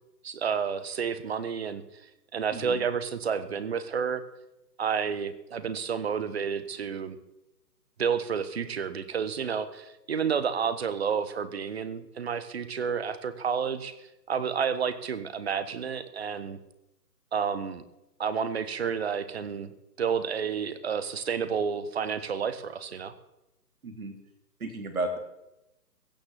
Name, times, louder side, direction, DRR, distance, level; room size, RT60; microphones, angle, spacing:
voice 1, 0.2-1.8 2.3-4.2 4.8-7.2 8.0-14.0 14.3-16.6 17.3-17.8 18.2-23.1, right 6 dB, 40° right, 13 dB, 1.3 m, -30 dB
voice 2, 2.5-2.8 23.8-24.1 24.6-25.2, right 2 dB, 60° right, 5 dB, 3.7 m, -33 dB
16.0 x 9.5 x 7.6 m, 0.89 s
figure-of-eight pair, 150°, 49 cm